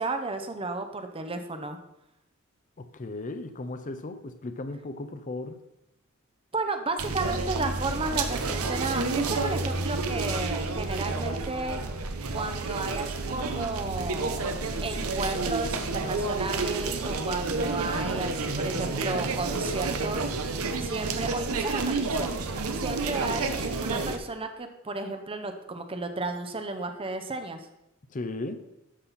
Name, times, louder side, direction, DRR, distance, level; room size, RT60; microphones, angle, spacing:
voice 1, 0.0-1.8 6.5-11.8 12.3-14.5 14.8-20.3 20.8-22.3 22.7-27.7, right 3 dB, 25° right, 7 dB, 0.7 m, -33 dB
voice 2, 2.8-5.6 28.1-28.7, left 2 dB, 35° left, 9 dB, 0.6 m, -36 dB
sound 1, 7.0-24.2, right 3 dB, 85° right, 0.9 m, -30 dB
12.5 x 5.7 x 4.1 m, 0.88 s
head